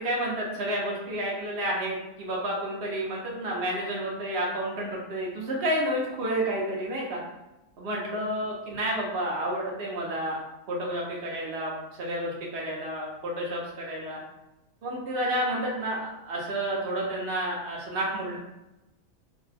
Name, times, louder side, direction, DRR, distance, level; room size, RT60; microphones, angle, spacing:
voice 1, 0.0-7.2 7.8-10.4 10.7-11.7 12.0-14.2 14.8-18.4, right 1 dB, 55° right, -3 dB, 0.8 m, -30 dB
2.6 x 2.1 x 4.0 m, 0.95 s
omnidirectional pair, 1.5 m